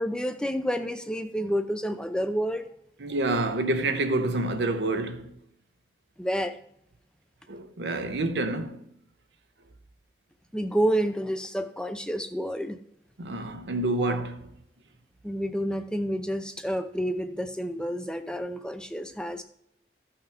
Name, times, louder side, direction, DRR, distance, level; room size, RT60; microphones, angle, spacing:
voice 1, 0.0-2.7 6.2-6.6 10.5-12.8 14.0-14.2 15.2-19.4, equal, 5° left, 0.5 m, -29 dB
voice 2, 3.0-5.3 7.5-8.9 13.2-14.5, right 2 dB, 90° right, 0.8 m, -28 dB
14.0 x 5.7 x 3.5 m
head